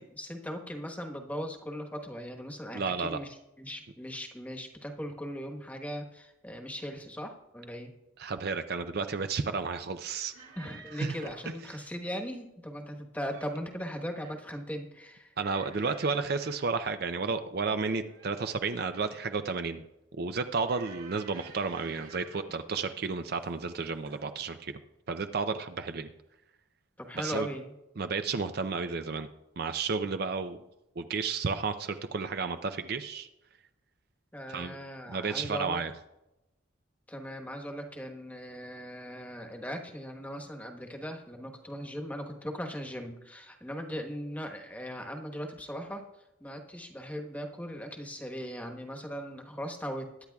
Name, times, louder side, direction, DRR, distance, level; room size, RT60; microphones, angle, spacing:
voice 1, 0.0-7.9 10.6-15.3 27.0-27.7 34.3-35.8 37.1-46.1 46.4-50.1, equal, 10° left, 3 dB, 1.2 m, -39 dB
voice 2, 2.7-3.2 8.2-10.3 11.0-11.1 15.4-19.8 20.2-24.7 25.1-26.1 27.1-27.5 28.0-29.3 29.6-30.6 31.0-33.3 34.5-34.7 35.1-35.9, right 4 dB, 50° right, 9 dB, 0.5 m, -32 dB
sound 1, 10.3-11.5 13.0-13.6 13.9-14.5 15.4-16.8 17.8-19.5 20.7-22.5 23.4-23.7 24.0-24.3, right 5 dB, 80° right, 2.4 m, -52 dB
22.5 x 10.5 x 2.4 m, 0.92 s
head